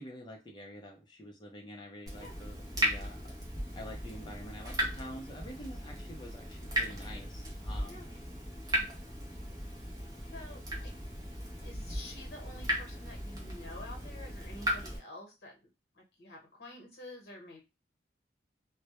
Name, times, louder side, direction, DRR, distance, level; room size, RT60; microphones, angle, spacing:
voice 1, 0.0-3.3 3.7-8.1, equal, 25° left, 2 dB, 0.4 m, -47 dB
Water tap faucet / Drip, 2.1-15.0, equal, 20° right, 0.6 m, -37 dB
voice 2, 10.3-10.9 11.6-15.6 15.9-17.6, left 1 dB, 60° left, 0 dB, 0.9 m, -49 dB
2.1 x 2.0 x 2.9 m, 0.26 s
head